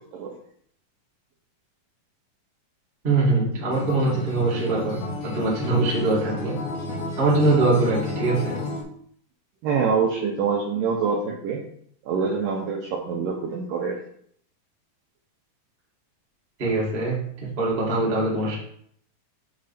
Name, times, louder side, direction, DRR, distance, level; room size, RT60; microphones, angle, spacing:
voice 1, 3.0-6.6 7.2-8.6 16.6-17.1 17.6-18.6, right 3 dB, 35° right, -6 dB, 0.9 m, -22 dB
Acoustic guitar, 3.7-8.8, left 3 dB, 90° left, 3.5 m, -31 dB
voice 2, 9.6-11.6 12.0-14.0, right 5 dB, 85° right, -1 dB, 2.0 m, -25 dB
7.2 x 3.2 x 4.2 m, 0.64 s
omnidirectional pair, 4.8 m